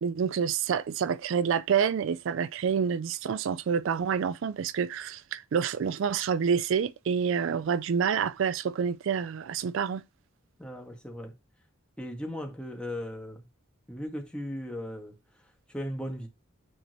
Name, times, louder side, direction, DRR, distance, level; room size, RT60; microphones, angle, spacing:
voice 1, 0.0-10.0, right 7 dB, 65° right, 0.4 m, -28 dB
voice 2, 10.6-11.3 12.0-13.4 13.9-16.3, equal, 5° left, 1.8 m, -37 dB
9.4 x 4.4 x 3.0 m
head